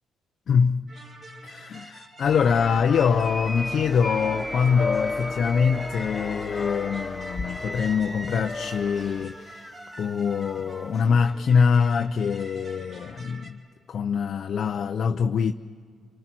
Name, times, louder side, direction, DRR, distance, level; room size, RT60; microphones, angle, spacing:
voice 1, 0.5-0.9 1.4-13.6 13.9-15.5, left 6 dB, 55° left, 0.6 m, -24 dB
sound 1, 0.9-13.5, right 1 dB, 40° right, 3.2 m, -47 dB
sound 2, 2.2-9.2, left 4 dB, 25° left, 1.5 m, -34 dB
sound 3, 2.9-10.9, equal, 5° right, 0.7 m, -39 dB
27.5 x 25.0 x 6.1 m
cardioid pair, 90°, 0 cm